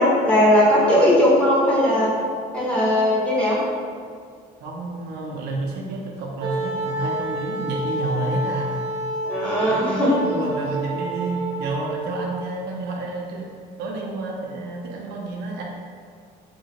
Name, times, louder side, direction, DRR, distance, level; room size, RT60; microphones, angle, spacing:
voice 1, 0.0-2.1 2.5-3.6 9.3-10.1, left 1 dB, 5° left, -8 dB, 1.0 m, -18 dB
voice 2, 4.6-8.8 9.7-13.5 13.8-15.6, right 2 dB, 80° right, -2 dB, 0.5 m, -30 dB
Wind instrument woodwind instrument, 6.4-12.4, right 1 dB, 35° right, 0.7 m, -29 dB
2.9 x 2.7 x 2.9 m, 2.1 s
cardioid pair, 110°, 17 cm